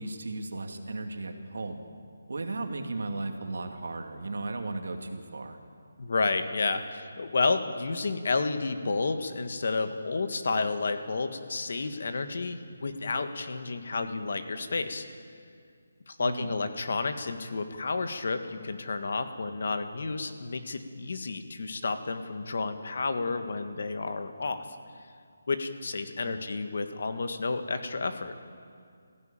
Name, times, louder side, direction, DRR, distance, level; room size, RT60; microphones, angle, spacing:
voice 1, 0.0-1.9 2.3-5.6 16.2-16.5 26.3-26.4, right 2 dB, 60° right, 4 dB, 2.3 m, -35 dB
voice 2, 6.0-15.0 16.1-24.6 25.5-28.3, left 3 dB, 45° left, 8 dB, 1.5 m, -31 dB
21.0 x 16.0 x 8.9 m, 2.2 s
hypercardioid pair, 180°, 0 cm